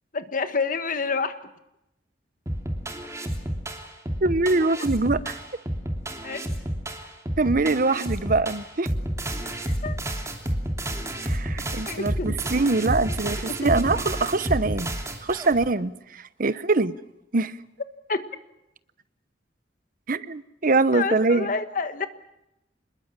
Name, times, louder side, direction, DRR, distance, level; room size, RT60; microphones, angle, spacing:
voice 1, 0.1-1.3 6.2-6.5 9.4-10.0 11.9-12.3 13.5-13.9 18.1-18.2 20.9-22.1, left 4 dB, 50° left, 10 dB, 1.5 m, -29 dB
sound 1, 2.5-15.7, right 1 dB, 15° right, 2.9 m, -30 dB
voice 2, 4.2-5.4 7.4-8.9 11.2-15.0 15.2-16.9 17.3-17.5 20.1-21.5, right 3 dB, 50° right, 15 dB, 0.9 m, -23 dB
26.0 x 21.5 x 7.4 m, 0.87 s
head